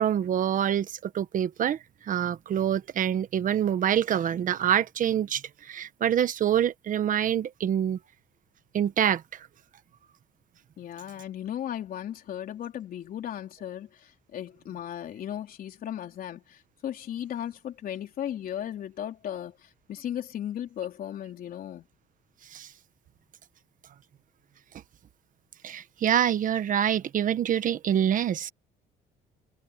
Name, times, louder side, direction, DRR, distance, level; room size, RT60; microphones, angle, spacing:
voice 1, 0.0-8.0 8.7-9.5 22.5-22.7 25.6-28.5, right 9 dB, 50° right, 1.4 m, -26 dB
voice 2, 10.8-21.9, left 10 dB, 60° left, 3.8 m, -36 dB
cardioid pair, 110°, 17 cm